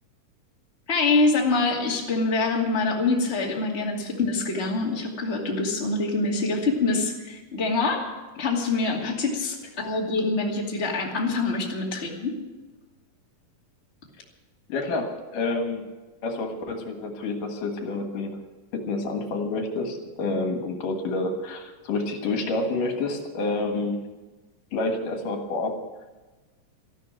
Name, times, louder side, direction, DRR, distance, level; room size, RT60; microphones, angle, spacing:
voice 1, 0.9-12.4, left 3 dB, 20° left, -1 dB, 2.4 m, -25 dB
voice 2, 14.7-15.8 16.2-18.4 18.7-24.0 24.7-25.8, left 2 dB, 75° left, 4 dB, 3.1 m, -28 dB
13.5 x 12.5 x 7.7 m, 1.2 s
omnidirectional pair, 3.8 m